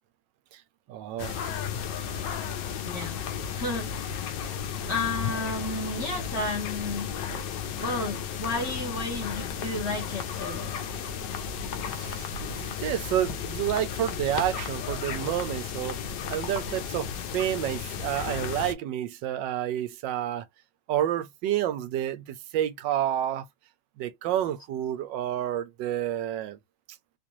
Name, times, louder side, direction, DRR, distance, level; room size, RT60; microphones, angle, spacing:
voice 1, 0.9-1.4 11.9-16.0 16.3-20.4 20.9-23.5 24.0-26.6, right 11 dB, 85° right, 1.3 m, -29 dB
sound 1, 1.2-18.7, left 7 dB, 80° left, 1.4 m, -34 dB
voice 2, 2.8-3.2 3.5-3.9 4.9-7.1 7.8-10.7, left 2 dB, 40° left, 1.5 m, -32 dB
3.7 x 2.5 x 2.9 m
omnidirectional pair, 1.9 m